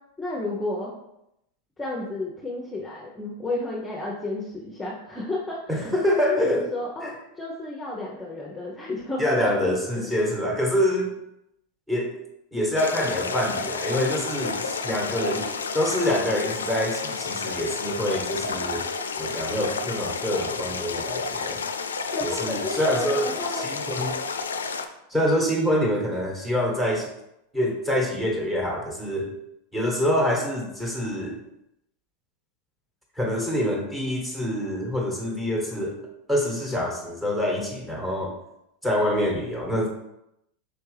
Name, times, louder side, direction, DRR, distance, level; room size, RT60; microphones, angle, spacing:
voice 1, 0.2-0.9 1.8-9.7 10.2-10.3 22.1-23.7, left 2 dB, 10° left, -4 dB, 0.8 m, -32 dB
voice 2, 5.7-6.6 7.0-7.1 9.2-11.1 11.9-12.1 12.5-15.5 15.7-18.9 19.2-21.6 22.2-24.2 25.1-27.1 27.5-29.3 29.7-31.4 33.2-36.0 36.3-38.3 38.8-39.9, left 1 dB, 10° right, -1 dB, 1.4 m, -26 dB
sound 1, 12.8-24.9, left 4 dB, 90° left, 0.3 m, -31 dB
4.6 x 3.3 x 3.3 m, 0.83 s
hypercardioid pair, 100°, 0 cm